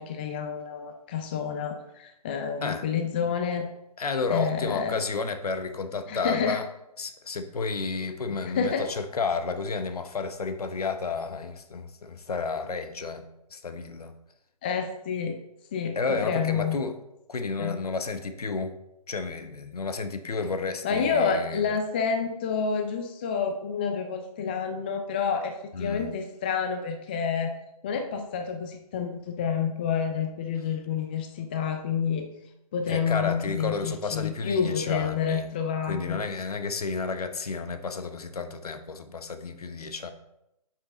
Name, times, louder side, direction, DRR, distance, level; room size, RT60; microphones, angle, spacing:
voice 1, 0.0-3.7 4.3-5.0 6.1-6.6 8.3-8.9 14.6-15.4 15.7-16.8 17.6-17.8 20.8-27.5 27.8-32.2 32.7-36.2, left 6 dB, 15° left, 5 dB, 0.3 m, -29 dB
voice 2, 4.0-6.7 7.0-13.2 13.5-14.1 15.9-17.0 17.3-18.8 19.1-21.7 25.7-26.1 32.9-35.5 35.8-40.1, left 4 dB, 70° left, 9 dB, 1.0 m, -31 dB
7.5 x 5.8 x 3.9 m, 0.86 s
figure-of-eight pair, 145°, 20 cm